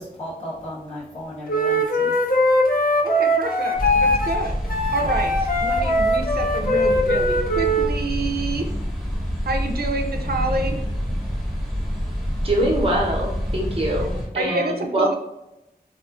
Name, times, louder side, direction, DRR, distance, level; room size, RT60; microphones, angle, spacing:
voice 1, 0.0-2.4 5.0-5.1, left 1 dB, 40° left, -10 dB, 0.9 m, -35 dB
Wind instrument woodwind instrument, 1.5-7.9, equal, 60° left, 0.4 m, -21 dB
voice 2, 3.0-8.7 9.5-10.8 14.1-15.1, right 2 dB, 75° right, 4 dB, 0.4 m, -28 dB
sound 1, 3.7-14.3, equal, ahead, 0.9 m, -27 dB
voice 3, 12.4-15.1, right 1 dB, 35° right, -2 dB, 0.7 m, -23 dB
2.4 x 2.3 x 2.4 m, 0.88 s
wide cardioid pair, 55°, 16 cm